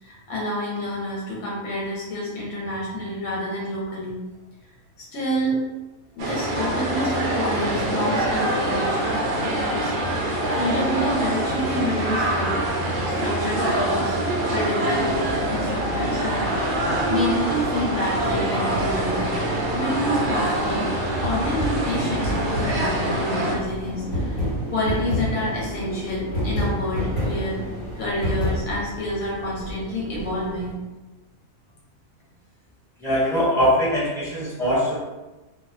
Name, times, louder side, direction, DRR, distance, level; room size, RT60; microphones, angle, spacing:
voice 1, 0.0-4.2 5.0-5.6 6.2-9.9 10.5-12.5 13.1-14.2 14.5-15.1 15.5-16.8 17.1-19.3 19.7-24.4 24.7-27.6 28.0-30.7, equal, 85° left, -4 dB, 1.1 m, -28 dB
sound 1, 6.2-23.5, right 1 dB, 75° right, 0.4 m, -25 dB
sound 2, 15.1-30.7, equal, 55° left, 1.0 m, -31 dB
voice 2, 33.0-35.0, equal, ahead, -11 dB, 0.9 m, -21 dB
2.4 x 2.2 x 2.4 m, 1.1 s
omnidirectional pair, 1.4 m